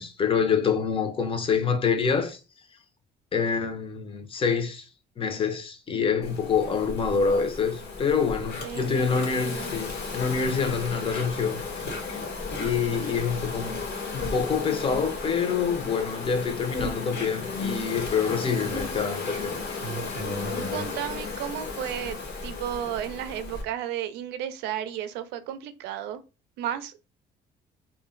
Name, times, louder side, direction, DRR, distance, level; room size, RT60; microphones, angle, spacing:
voice 1, 0.0-2.4 3.3-4.9 5.2-12.2 12.6-13.8 14.1-19.5, left 6 dB, 30° left, 0.6 m, -26 dB
Insect, 6.2-23.6, left 3 dB, 75° left, 1.1 m, -34 dB
voice 2, 8.6-9.7 20.7-26.2 26.6-27.0, right 10 dB, 90° right, 0.4 m, -33 dB
2.2 x 2.1 x 3.7 m
cardioid pair, 110°, 17 cm